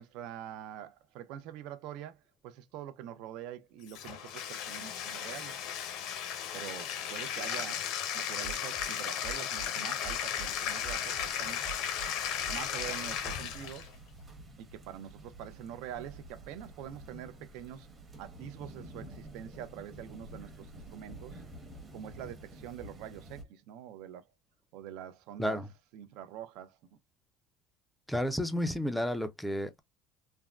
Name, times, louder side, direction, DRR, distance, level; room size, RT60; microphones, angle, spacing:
voice 1, 0.0-5.5 6.5-7.9 8.1-11.6 12.4-13.9 14.6-17.9 18.2-21.4 21.9-24.2 24.7-25.6 25.9-27.0, right 10 dB, 70° right, 0.5 m, -45 dB
Bathtub (filling or washing), 3.9-13.9, left 9 dB, 65° left, 0.6 m, -35 dB
sound 1, 8.4-8.9 9.2-9.7 10.0-10.5 10.8-11.3 11.6-12.1 12.4-12.9 13.2-13.4, right 10 dB, 50° right, 0.9 m, -43 dB
sound 2, 10.1-23.4, right 1 dB, 20° right, 0.8 m, -50 dB
voice 2, 28.1-29.8, equal, ahead, 0.3 m, -31 dB
3.4 x 2.1 x 2.3 m
cardioid pair, 165°, 0 cm